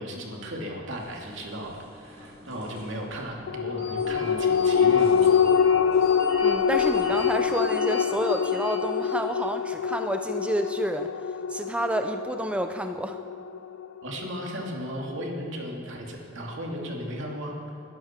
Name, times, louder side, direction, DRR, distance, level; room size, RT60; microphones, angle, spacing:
voice 1, 0.0-5.4 14.0-17.6, equal, 65° right, -1 dB, 2.6 m, -35 dB
sound 1, 0.9-7.4, left 1 dB, 30° left, 4.5 m, -51 dB
sound 2, 3.5-14.3 14.7-14.8, left 7 dB, 75° left, 0.4 m, -25 dB
sound 3, 3.8-9.5, left 1 dB, 30° right, 3.5 m, -39 dB
voice 2, 6.4-11.1 11.5-13.2, right 1 dB, 5° right, 7 dB, 0.4 m, -29 dB
21.5 x 12.0 x 4.5 m, 2.8 s
head